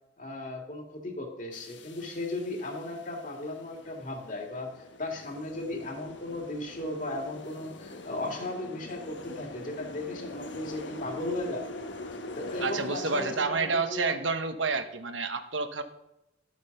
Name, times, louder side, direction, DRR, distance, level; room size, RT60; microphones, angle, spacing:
voice 1, 0.2-11.7 12.4-14.2, left 2 dB, 45° left, 2 dB, 2.6 m, -36 dB
sound 1, 1.5-13.4, left 2 dB, 70° left, 1.2 m, -43 dB
voice 2, 12.6-15.8, right 4 dB, 90° right, 8 dB, 1.1 m, -29 dB
12.0 x 8.3 x 5.5 m, 0.90 s
head